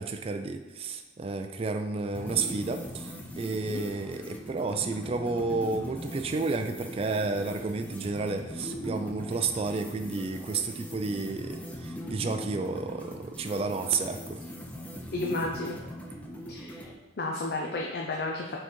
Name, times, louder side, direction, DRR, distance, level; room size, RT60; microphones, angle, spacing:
voice 1, 0.0-14.4, right 4 dB, 35° right, 6 dB, 0.3 m, -31 dB
sound 1, 2.1-16.9, equal, 10° left, 0.7 m, -41 dB
voice 2, 15.1-15.8 16.5-16.9 17.2-18.5, left 2 dB, 60° left, -1 dB, 0.6 m, -32 dB
6.2 x 3.9 x 4.4 m, 1.1 s
head